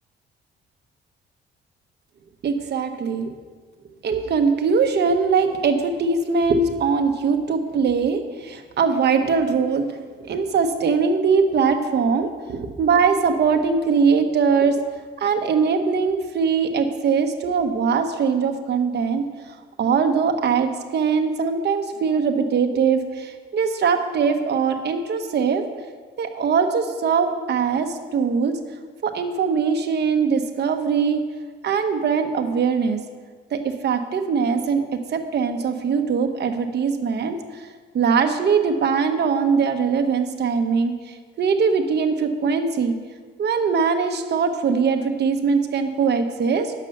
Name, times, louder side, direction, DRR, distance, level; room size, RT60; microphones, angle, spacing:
voice 1, 2.4-3.3 4.0-9.9 10.2-14.8 15.2-19.2 19.8-25.6 26.2-28.5 29.0-31.2 31.6-33.0 33.5-34.8 35.1-37.6 37.9-42.9 43.4-46.7, right 5 dB, 60° right, 6 dB, 1.1 m, -21 dB
9.1 x 6.7 x 6.5 m, 1.5 s
cardioid pair, 90°, 20 cm